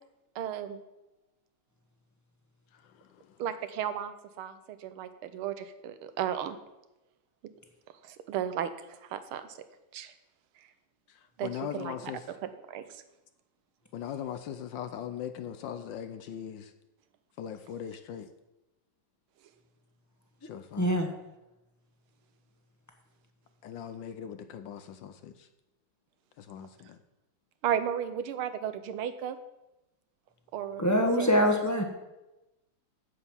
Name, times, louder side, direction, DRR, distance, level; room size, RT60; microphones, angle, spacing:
voice 1, 0.4-0.8 3.4-6.6 8.1-8.7 9.1-9.4 9.9-10.1 11.4-11.9 12.4-12.8 27.6-29.4 30.5-30.9 31.2-31.3, right 9 dB, 80° right, 11 dB, 1.6 m, -34 dB
voice 2, 2.8-3.4 11.1-12.2 13.9-16.7 17.4-18.3 20.4-21.0 23.6-25.5 26.4-27.0, left 9 dB, 70° left, 9 dB, 1.2 m, -40 dB
voice 3, 20.8-21.1 30.8-31.8, equal, 10° left, 3 dB, 0.9 m, -24 dB
8.4 x 8.0 x 7.2 m, 0.98 s
omnidirectional pair, 2.3 m